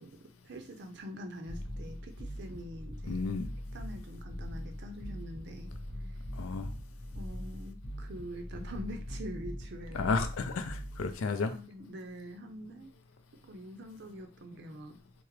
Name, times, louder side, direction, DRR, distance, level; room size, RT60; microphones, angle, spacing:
voice 1, 0.0-3.2 3.7-5.7 6.1-6.2 7.1-10.1 11.5-12.9 13.3-15.0, equal, 55° right, 6 dB, 0.5 m, -45 dB
sound 1, 1.5-11.2, equal, 55° left, 1.0 m, -41 dB
voice 2, 3.1-3.5 6.4-6.7 9.9-11.5, left 4 dB, 80° left, 8 dB, 0.4 m, -32 dB
3.4 x 2.0 x 3.1 m, 0.35 s
head